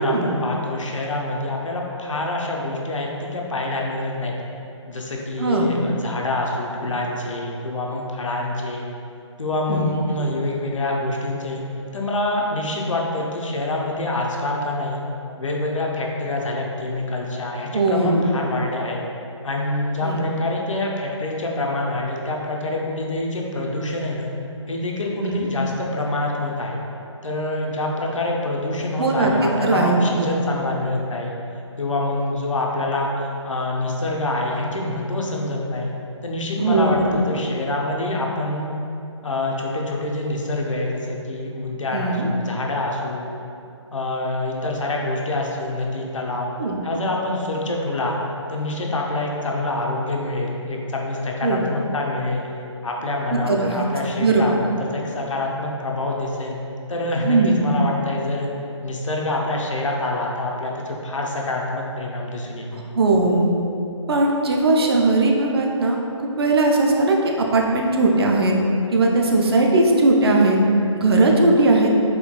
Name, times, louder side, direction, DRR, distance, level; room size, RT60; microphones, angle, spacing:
voice 1, 0.0-4.3 4.9-8.9 9.4-11.6 11.9-15.0 15.4-19.0 19.4-24.3 24.7-26.8 27.2-31.3 31.8-35.9 36.2-38.7 39.2-43.3 43.9-46.5 46.8-48.2 48.5-52.4 52.8-56.6 56.9-58.5 58.8-62.8, left 2 dB, 75° left, -1 dB, 0.5 m, -26 dB
voice 2, 5.4-5.7 9.7-9.9 17.7-18.3 20.0-20.3 25.2-25.5 29.0-30.3 36.6-37.4 41.9-42.3 46.6-46.8 51.4-51.6 53.3-53.8 54.1-54.4 57.2-57.7 62.7-63.5 64.1-68.5 68.9-70.6 71.0-71.9, right 2 dB, 50° right, 0 dB, 0.4 m, -19 dB
4.4 x 2.2 x 2.2 m, 2.7 s
figure-of-eight pair, 150°, 16 cm